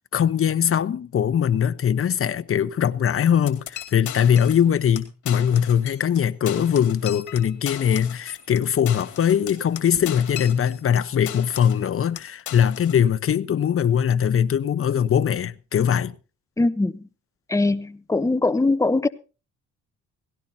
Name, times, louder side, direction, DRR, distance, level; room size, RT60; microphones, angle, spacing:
voice 1, 0.1-16.1, left 8 dB, 45° left, 1.0 m, -21 dB
sound 1, 3.5-4.7 5.0-5.1 5.3-6.2 6.5-11.0 11.3-11.9 12.2-13.0, left 12 dB, 75° left, 2.3 m, -37 dB
voice 2, 16.6-17.1 17.5-19.1, left 2 dB, 10° left, 0.9 m, -21 dB
18.0 x 16.5 x 2.8 m
cardioid pair, 90°, 30 cm